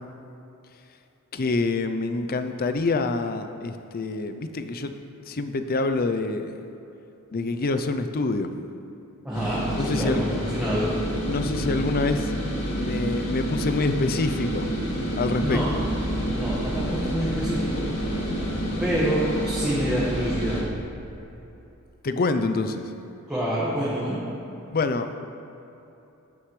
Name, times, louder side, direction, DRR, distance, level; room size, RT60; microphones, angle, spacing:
voice 1, 1.3-4.9 5.3-6.5 7.3-8.5 9.8-10.2 11.2-12.3 12.7-14.7 15.2-15.8 22.0-22.8 24.7-25.1, left 3 dB, 40° left, 9 dB, 0.5 m, -26 dB
voice 2, 9.2-10.9 15.4-15.7 16.3-17.9 18.8-20.6 23.3-24.2, equal, 5° right, -9 dB, 1.5 m, -27 dB
sound 1, 9.3-20.6, right 1 dB, 80° left, 1.9 m, -29 dB
sound 2, 21.0-21.9, equal, 25° left, 1.5 m, -41 dB
12.0 x 9.8 x 3.2 m, 3.0 s
head